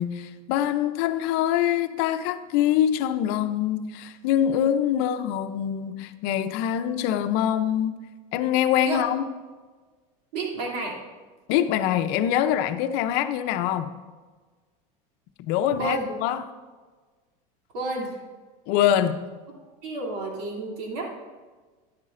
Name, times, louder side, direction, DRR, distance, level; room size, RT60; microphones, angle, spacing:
voice 1, 0.0-8.0 8.3-9.3 11.5-14.0 15.4-16.5 18.7-19.2, left 10 dB, 55° left, 0.7 m, -24 dB
voice 2, 10.3-11.0 15.8-16.1 17.7-18.2 19.8-21.1, right 2 dB, 80° right, 3.0 m, -30 dB
12.5 x 10.5 x 2.6 m
supercardioid pair, 145°, 19 cm